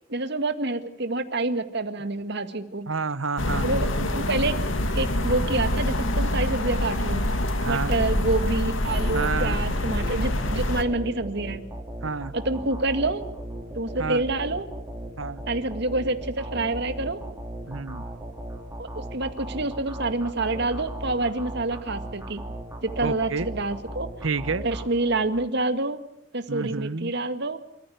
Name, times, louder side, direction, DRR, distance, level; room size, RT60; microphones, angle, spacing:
voice 1, 0.1-2.9 3.6-4.5 4.9-7.2 7.7-11.6 12.3-13.2 13.7-14.7 15.5-17.2 18.8-22.4 22.8-24.1 24.6-26.0 26.3-27.6, right 2 dB, 55° right, 9 dB, 2.0 m, -27 dB
voice 2, 2.9-3.7 7.6-7.9 9.1-9.6 12.0-12.3 14.0-14.2 15.2-15.4 17.7-18.0 23.0-23.5 24.2-24.6 26.5-27.1, right 4 dB, 80° right, 15 dB, 1.1 m, -29 dB
sound 1, 3.4-10.8, left 1 dB, 75° left, 2.3 m, -26 dB
sound 2, 8.9-25.5, right 1 dB, 15° right, 3.5 m, -37 dB
28.0 x 14.5 x 9.4 m, 0.78 s
head